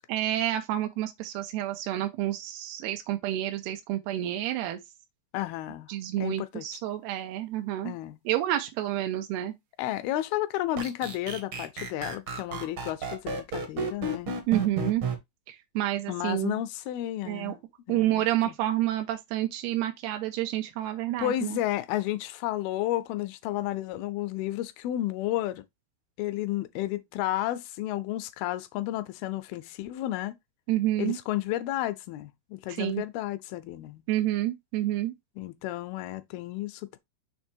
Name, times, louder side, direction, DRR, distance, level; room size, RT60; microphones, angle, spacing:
voice 1, 0.1-4.8 5.9-8.0 8.3-9.5 14.5-15.0 15.5-16.6 17.2-17.5 17.9-21.6 30.7-31.2 32.8-33.0 34.1-35.1, right 13 dB, 85° right, 2.8 m, -29 dB
voice 2, 5.3-5.9 6.2-6.7 7.8-8.2 9.8-14.3 16.1-17.6 17.9-18.6 21.2-25.6 26.2-30.4 31.0-34.0 35.4-37.0, left 14 dB, 80° left, 2.3 m, -32 dB
sound 1, 10.8-15.1, right 3 dB, 65° right, 1.3 m, -32 dB
6.6 x 3.3 x 4.3 m
omnidirectional pair, 4.6 m